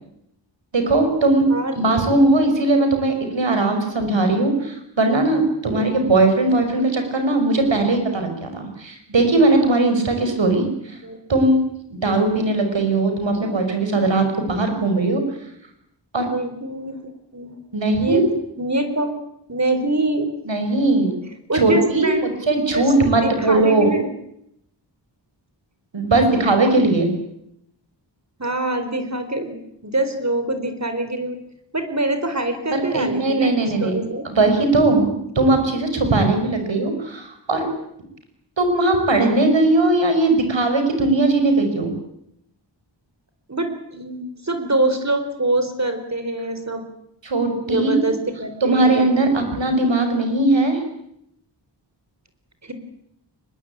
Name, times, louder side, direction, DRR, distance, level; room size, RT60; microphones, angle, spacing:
voice 1, 0.7-1.5 1.7-11.0 11.3-11.6 11.9-15.2 16.1-16.3 17.7-18.3 20.5-21.1 21.5-23.9 25.9-27.1 32.7-34.0 34.2-37.7 38.6-41.9 47.2-48.0 48.6-50.8, right 2 dB, 75° right, 6 dB, 6.0 m, -19 dB
voice 2, 1.5-2.0 2.7-2.8 5.7-5.9 11.0-11.2 16.3-17.0 17.3-17.6 18.0-18.2 18.6-19.1 19.5-20.3 21.5-22.3 22.7-22.9 23.2-24.1 28.4-29.6 29.8-31.4 31.7-34.2 43.5-46.8 47.7-49.1 52.6-52.7, right 2 dB, 35° right, 8 dB, 4.3 m, -24 dB
24.5 x 20.5 x 8.8 m, 0.77 s
wide cardioid pair, 65°, 45 cm